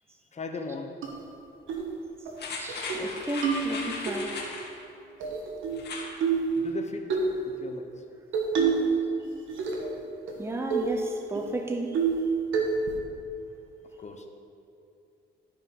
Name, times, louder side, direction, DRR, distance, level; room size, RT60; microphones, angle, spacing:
voice 1, 0.3-0.9 6.6-7.2 7.4-8.0 14.0-14.3, left 4 dB, 35° left, 4 dB, 1.1 m, -37 dB
sound 1, 1.0-1.1 1.7-1.9 2.3-2.4 2.7-3.1 3.4-4.2 5.2-5.8 6.2-6.5 7.1-7.3 8.3-8.9 9.2-9.9 10.3-10.4 10.7-10.9 11.3-11.4 11.9-12.3 12.5-13.0, right 5 dB, 80° right, 1.5 m, -27 dB
sound 2, 2.4-4.7 5.7-6.1 6.5-6.6, left 3 dB, 60° left, 2.1 m, -37 dB
voice 2, 2.6-4.5 10.4-12.1, right 2 dB, 10° right, 4 dB, 0.7 m, -34 dB
12.5 x 5.3 x 5.4 m, 2.6 s
cardioid pair, 90°, 20 cm